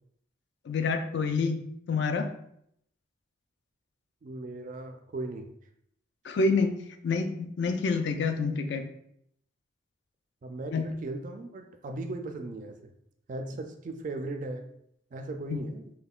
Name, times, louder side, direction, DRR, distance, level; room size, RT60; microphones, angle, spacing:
voice 1, 0.7-2.3 6.2-6.7 7.0-8.9 10.7-10.8 15.5-15.6, left 4 dB, 60° left, 7 dB, 0.3 m, -27 dB
voice 2, 4.2-5.5 10.4-12.9 13.3-14.7 15.1-15.8, right 2 dB, 40° right, 6 dB, 0.3 m, -37 dB
5.4 x 2.2 x 2.3 m, 0.72 s
head